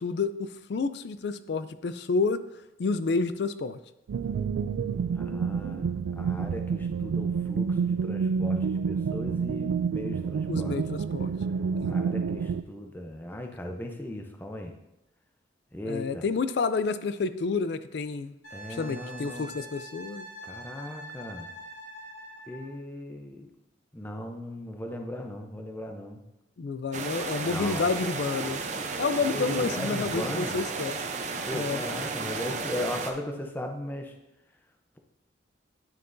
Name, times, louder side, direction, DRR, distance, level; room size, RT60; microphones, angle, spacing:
voice 1, 0.0-2.4 2.8-3.8 10.5-11.3 11.8-12.0 15.9-18.3 18.7-20.2 26.6-28.6 29.0-31.0 31.5-31.8, left 4 dB, 60° left, 13 dB, 0.4 m, -29 dB
sound 1, 4.1-12.6, right 6 dB, 90° right, 0.3 m, -29 dB
voice 2, 5.1-10.8 11.9-14.7 15.7-16.2 18.5-19.5 20.4-21.5 22.5-23.5 23.9-26.2 27.4-27.9 29.2-30.6 31.5-34.1, left 1 dB, 10° left, 3 dB, 0.6 m, -37 dB
Wind instrument woodwind instrument, 18.4-22.7 25.4-25.5, equal, 85° left, 2.9 m, -44 dB
sound 2, 26.9-33.1, right 4 dB, 40° right, 0.6 m, -33 dB
9.1 x 6.6 x 2.6 m, 0.92 s
head